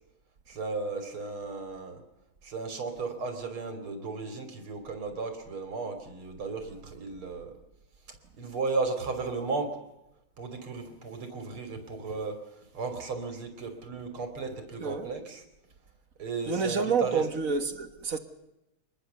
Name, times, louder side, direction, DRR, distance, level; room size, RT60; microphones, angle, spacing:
voice 1, 0.5-2.0 2.4-7.6 8.4-9.8 10.4-15.4 16.2-17.3, right 4 dB, 80° right, 3.8 m, -35 dB
voice 2, 16.5-18.2, right 5 dB, 40° right, 1.9 m, -28 dB
26.0 x 21.0 x 6.9 m
omnidirectional pair, 2.3 m